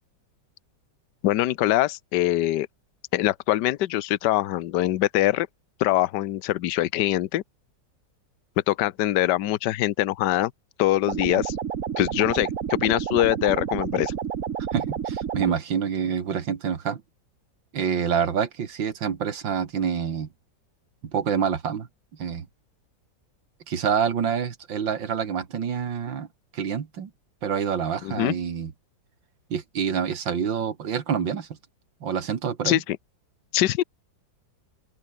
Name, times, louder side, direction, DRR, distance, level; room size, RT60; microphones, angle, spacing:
voice 1, 1.2-2.7 3.1-5.5 5.8-7.4 8.7-10.5 10.8-11.5 12.0-14.1 28.0-28.3 32.6-33.0 33.5-33.8, left 14 dB, 70° left, 1.4 m, -23 dB
sound 1, 11.1-15.5, right 8 dB, 50° right, 1.4 m, -30 dB
voice 2, 14.7-17.0 17.7-20.3 21.0-21.9 22.2-22.5 23.7-26.3 26.5-27.1 27.4-28.7 29.5-31.5 32.0-32.8, right 7 dB, 80° right, 2.6 m, -27 dB
open air
omnidirectional pair, 2.0 m